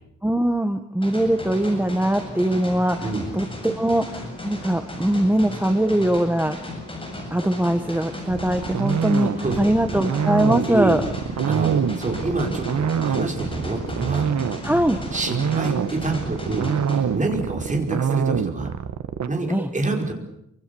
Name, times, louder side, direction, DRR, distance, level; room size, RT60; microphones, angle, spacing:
voice 1, 0.2-6.6 7.3-11.0 14.6-15.0 19.5-19.7, right 1 dB, 5° right, 8 dB, 1.2 m, -22 dB
sound 1, 1.0-17.0, left 1 dB, 15° left, 7.7 m, -35 dB
voice 2, 3.0-3.3 9.4-9.6 9.9-10.0 10.6-11.0 11.5-14.3 15.1-16.7 17.1-18.7 19.3-20.1, right 2 dB, 25° right, 2 dB, 5.0 m, -27 dB
sound 2, 8.3-19.3, right 8 dB, 65° right, 1.2 m, -25 dB
27.5 x 25.5 x 6.9 m, 0.78 s
wide cardioid pair, 175°, 31 cm